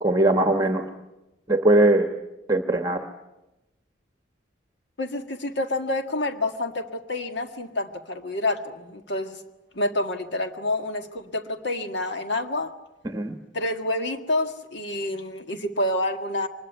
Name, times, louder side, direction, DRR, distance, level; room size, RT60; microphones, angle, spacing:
voice 1, 0.0-0.9 1.5-2.1 2.5-3.1 13.0-13.3, right 1 dB, 20° right, 5 dB, 1.2 m, -20 dB
voice 2, 5.0-9.4 9.8-12.7 13.5-16.5, left 2 dB, 65° left, 6 dB, 1.8 m, -28 dB
24.5 x 20.5 x 9.4 m, 1.0 s
head